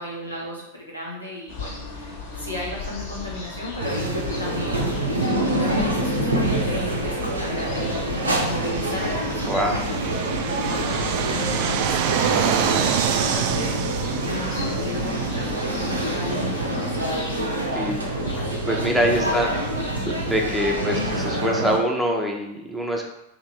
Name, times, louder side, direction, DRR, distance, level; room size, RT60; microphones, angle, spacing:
voice 1, 0.0-4.1 4.4-4.8 5.5-10.3 10.7-12.1 12.4-17.0 19.2-19.5 20.7-21.1, left 1 dB, 85° left, -5 dB, 1.2 m, -35 dB
sound 1, 1.5-21.4, left 4 dB, 55° left, 0.9 m, -37 dB
sound 2, 3.8-21.8, right 1 dB, 80° right, 0.6 m, -26 dB
Fixed-wing aircraft airplane, 6.9-16.1, right 9 dB, 45° right, 0.3 m, -28 dB
voice 2, 9.5-9.8 17.8-18.1 18.6-19.5 20.0-23.1, equal, ahead, -1 dB, 0.7 m, -24 dB
2.9 x 2.8 x 4.4 m, 0.87 s
figure-of-eight pair, 90°, 0 cm